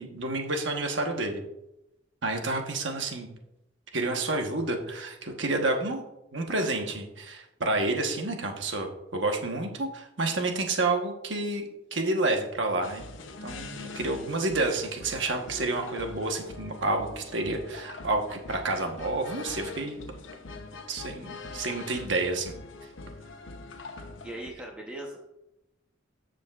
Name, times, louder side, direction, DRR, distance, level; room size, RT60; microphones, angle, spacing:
voice 1, 0.0-1.4 2.2-3.3 3.9-6.0 6.3-11.6 11.9-13.0 13.4-20.0 20.9-22.5, right 2 dB, 70° right, 3 dB, 1.2 m, -29 dB
sound 1, 12.8-24.5, left 3 dB, 85° left, 0.8 m, -43 dB
voice 2, 24.2-25.3, right 1 dB, 5° right, -2 dB, 0.9 m, -40 dB
14.0 x 5.2 x 2.4 m, 0.88 s
head